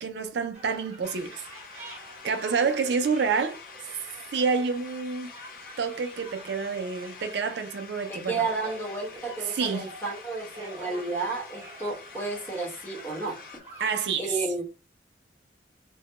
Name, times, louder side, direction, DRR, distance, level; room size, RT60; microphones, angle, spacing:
voice 1, 0.0-1.4 2.2-3.6 4.3-5.3 5.8-8.4 9.5-9.9 13.8-14.3, right 5 dB, 65° right, 0.4 m, -28 dB
sound 1, 0.5-13.9, right 1 dB, 35° right, 1.3 m, -47 dB
sound 2, 1.0-13.6, left 5 dB, 50° left, 0.5 m, -47 dB
voice 2, 8.1-13.6 14.2-14.6, right 3 dB, 10° left, 0.9 m, -32 dB
2.2 x 2.1 x 2.9 m
head